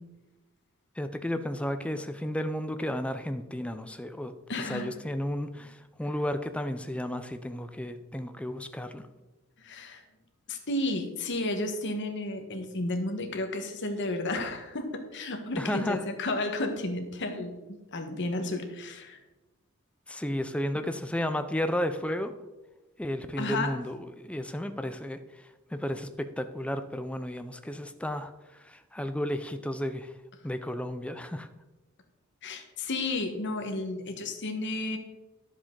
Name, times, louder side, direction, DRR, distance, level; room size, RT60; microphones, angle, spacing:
voice 1, 1.0-4.3 4.7-9.1 15.6-16.0 20.1-22.3 23.0-30.1 30.4-31.5, left 1 dB, 5° left, 9 dB, 0.5 m, -33 dB
voice 2, 4.5-4.9 9.6-10.0 10.5-19.2 23.4-23.7 32.4-35.0, left 2 dB, 55° left, 5 dB, 1.3 m, -32 dB
11.0 x 7.2 x 3.8 m, 1.1 s
head